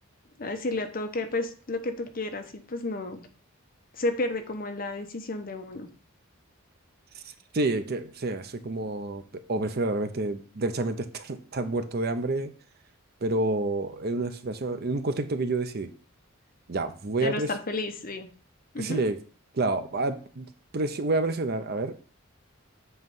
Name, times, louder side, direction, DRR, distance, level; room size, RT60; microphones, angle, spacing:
voice 1, 0.4-3.2 4.0-5.9 17.2-18.3 18.7-19.0, left 2 dB, 45° left, 6 dB, 0.8 m, -32 dB
voice 2, 7.5-12.5 13.2-15.9 16.7-17.5 18.8-19.2 19.5-20.5 20.7-21.9, right 2 dB, 50° right, 9 dB, 0.6 m, -29 dB
7.9 x 3.1 x 5.4 m, 0.40 s
head